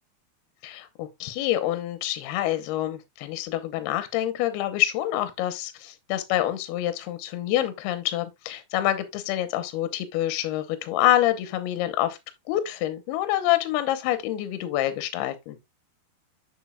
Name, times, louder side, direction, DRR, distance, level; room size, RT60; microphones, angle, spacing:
voice 1, 0.6-12.2 12.5-15.6, left 13 dB, 80° left, 2.6 m, -27 dB
7.2 x 6.4 x 2.3 m
omnidirectional pair, 4.8 m